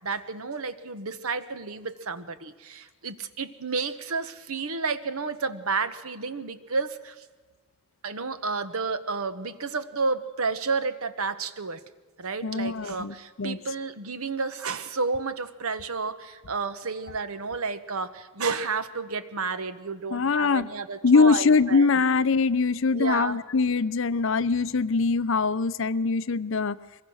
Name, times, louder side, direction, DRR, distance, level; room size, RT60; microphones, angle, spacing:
voice 1, 0.0-7.1 8.0-11.8 12.2-21.9 22.9-23.4, right 4 dB, 90° right, 11 dB, 1.2 m, -31 dB
voice 2, 12.4-13.6 20.1-20.7 21.0-26.8, left 4 dB, 65° left, 15 dB, 0.6 m, -23 dB
24.0 x 21.5 x 6.4 m, 1.3 s
head